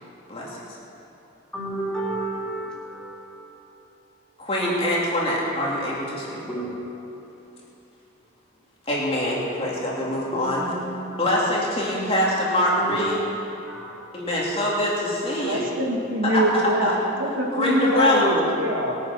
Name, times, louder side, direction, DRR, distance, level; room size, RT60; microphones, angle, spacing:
voice 1, 0.3-0.6 4.4-6.4 8.9-10.7 11.2-13.1 14.1-15.7 16.2-16.9 17.5-18.4, left 1 dB, 30° left, -5 dB, 2.8 m, -24 dB
voice 2, 1.5-3.6 6.5-6.7 10.3-11.1 12.8-13.1 13.7-14.3, right 2 dB, 5° left, -8 dB, 3.6 m, -32 dB
voice 3, 15.4-18.9, equal, 70° right, 0 dB, 1.9 m, -24 dB
21.0 x 9.1 x 6.2 m, 2.9 s
head